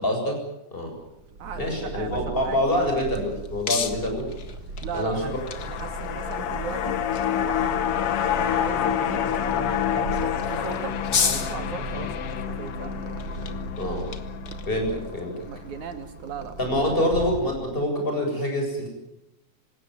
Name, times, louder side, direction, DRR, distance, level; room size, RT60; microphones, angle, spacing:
voice 1, 0.0-0.4 0.7-0.9 1.6-4.3 4.9-5.4 13.8-14.1 14.7-15.3 16.6-18.9, left 1 dB, 15° left, 2 dB, 7.7 m, -26 dB
Purr, 1.1-17.9, right 2 dB, 50° right, 2.1 m, -38 dB
voice 2, 1.4-2.9 4.7-5.3 5.7-7.0 7.3-7.8 8.2-9.2 9.5-11.0 11.3-13.0 15.4-17.0, right 6 dB, 75° right, 8 dB, 3.4 m, -37 dB
sound 1, 2.3-16.8, left 6 dB, 40° left, 1.5 m, -36 dB
sound 2, 5.1-15.5 15.8-15.9, left 10 dB, 60° left, 1.8 m, -28 dB
27.0 x 17.0 x 9.5 m, 0.88 s
omnidirectional pair, 3.5 m